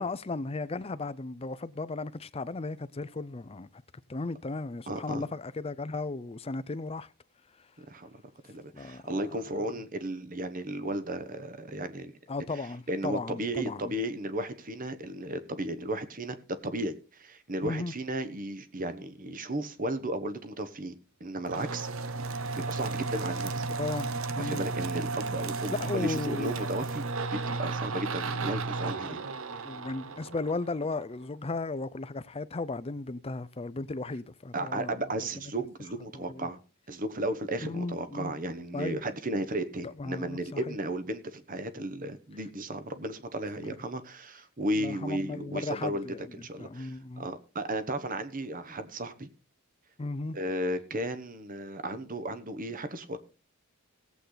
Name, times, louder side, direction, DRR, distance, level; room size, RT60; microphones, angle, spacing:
voice 1, 0.0-3.7 4.1-7.1 8.8-9.0 9.5-9.7 12.3-13.9 17.6-17.9 23.7-24.6 25.7-26.5 29.0-29.3 29.6-35.0 36.1-36.5 37.6-38.3 38.7-39.0 39.8-40.4 40.7-40.8 44.8-47.3 50.0-50.4, left 3 dB, 25° left, 0.5 m, -35 dB
voice 2, 4.9-5.3 7.8-8.1 8.4-12.1 12.9-16.4 16.6-21.9 22.3-23.7 24.4-29.2 29.5-29.7 34.5-36.6 36.9-49.3 50.3-53.2, right 1 dB, 40° right, 1.2 m, -34 dB
sound 1, 21.5-31.0, right 3 dB, 65° right, 0.8 m, -34 dB
17.0 x 8.3 x 3.9 m
head